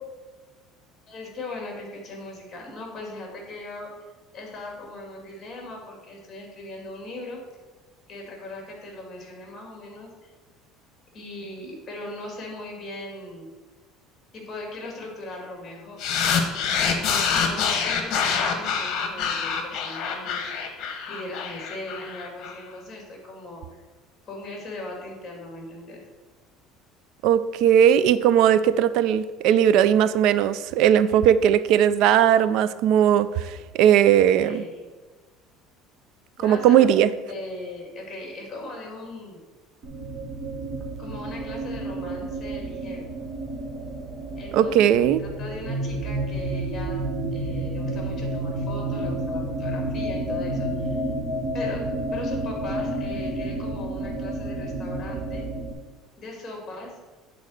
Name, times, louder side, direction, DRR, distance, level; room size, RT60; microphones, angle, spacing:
voice 1, 1.1-3.9 4.3-7.4 8.1-10.3 11.1-13.5 14.3-16.5 17.1-23.8 24.2-26.0 34.4-34.7 36.4-36.7 37.3-39.4 41.0-43.1 44.3-44.8 45.2-47.0 47.3-51.0 51.5-55.5 56.2-57.0, left 2 dB, 25° left, 1 dB, 2.4 m, -39 dB
sound 1, 16.0-22.5, left 6 dB, 50° left, 1.2 m, -26 dB
voice 2, 27.2-34.6 36.4-37.1 44.5-45.2, right 10 dB, 60° right, 15 dB, 0.4 m, -18 dB
sound 2, 39.8-55.7, right 1 dB, 40° right, 1.2 m, -30 dB
8.4 x 4.1 x 6.4 m, 1.3 s
cardioid pair, 145°, 0 cm